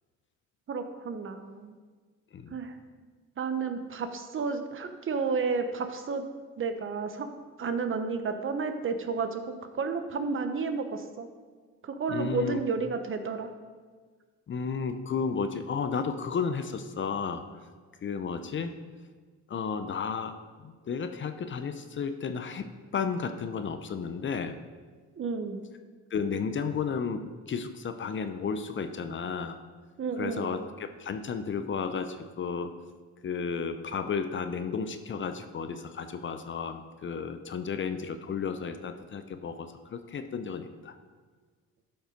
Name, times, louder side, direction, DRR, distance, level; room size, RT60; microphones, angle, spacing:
voice 1, 0.7-1.8 2.5-2.7 3.4-6.3 6.6-7.3 7.6-9.4 9.7-11.3 12.0-13.5 25.2-25.6 30.0-30.5, right 4 dB, 40° right, 7 dB, 1.0 m, -31 dB
voice 2, 12.1-12.6 14.5-17.6 18.0-18.7 19.5-20.3 20.6-24.6 26.1-27.2 27.5-29.6 30.2-32.7 33.2-40.9, left 6 dB, 40° left, 9 dB, 0.7 m, -33 dB
12.0 x 5.6 x 5.1 m, 1.5 s
cardioid pair, 100°, 31 cm